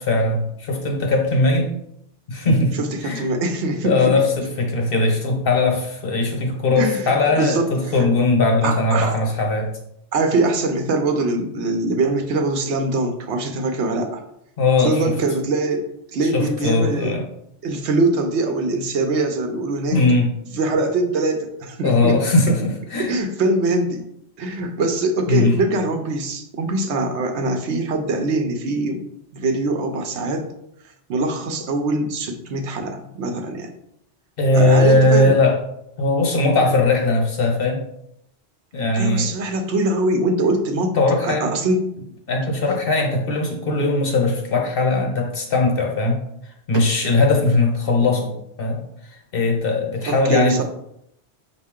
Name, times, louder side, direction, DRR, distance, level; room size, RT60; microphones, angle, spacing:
voice 1, 0.0-1.7 2.3-2.7 3.0-3.3 3.8-9.7 14.6-15.2 16.3-17.2 19.9-20.3 21.8-23.1 25.3-25.6 34.4-35.6 36.0-37.8 38.7-39.3 40.9-41.5 42.3-46.2 46.7-48.3 48.6-48.8 49.3-50.6, left 2 dB, 55° left, 2 dB, 1.0 m, -19 dB
voice 2, 2.8-4.1 6.8-7.7 8.6-9.2 10.1-14.2 14.8-17.1 17.6-20.0 20.5-22.2 23.0-24.1 24.4-29.0 29.3-30.5 31.1-33.7 34.5-35.3 38.9-41.0 41.2-41.8 46.7-46.8 50.0-50.6, right 2 dB, 75° right, 5 dB, 0.9 m, -23 dB
5.3 x 2.5 x 3.6 m, 0.76 s
omnidirectional pair, 1.2 m